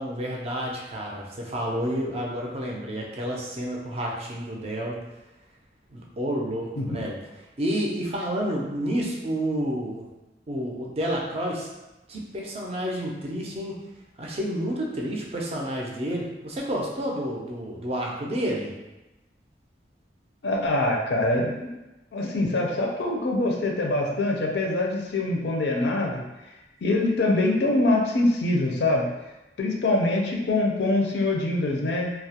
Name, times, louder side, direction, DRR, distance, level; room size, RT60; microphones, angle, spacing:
voice 1, 0.0-5.0 5.9-7.1 7.6-10.0 10.5-11.7 12.1-13.8 14.2-18.7, equal, 35° right, -2 dB, 0.4 m, -30 dB
voice 2, 6.8-7.1 20.4-21.7 22.1-26.2 26.8-29.1 29.6-32.1, left 2 dB, 70° left, 0 dB, 0.4 m, -24 dB
2.3 x 2.0 x 2.7 m, 1.0 s
head